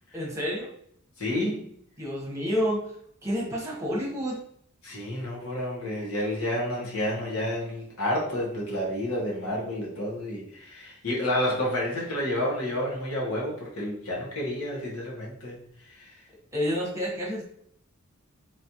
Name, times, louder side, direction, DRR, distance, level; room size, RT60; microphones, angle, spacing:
voice 1, 0.1-0.7 2.0-3.0 3.2-4.4 16.5-17.4, equal, 15° right, -4 dB, 1.2 m, -29 dB
voice 2, 1.2-1.7 4.8-15.6 16.0-16.1, left 1 dB, 75° left, -3 dB, 1.3 m, -30 dB
4.1 x 3.1 x 2.9 m, 0.67 s
head